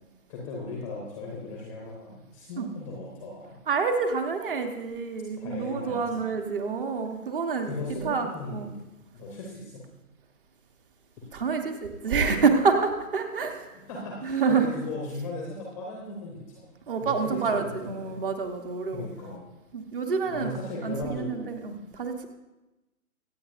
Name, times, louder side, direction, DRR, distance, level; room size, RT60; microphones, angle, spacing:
voice 1, 0.3-3.6 5.3-6.3 7.6-8.7 9.1-9.8 13.9-16.7 17.0-18.2 18.9-19.4 20.2-21.4, left 2 dB, 5° left, -3 dB, 0.7 m, -37 dB
voice 2, 3.7-7.7 8.0-8.7 11.3-13.8 14.2-14.7 16.9-19.1 19.7-20.5 20.8-22.3, right 5 dB, 35° right, 6 dB, 1.2 m, -27 dB
24.5 x 8.5 x 2.6 m, 1.0 s
figure-of-eight pair, 140°, 44 cm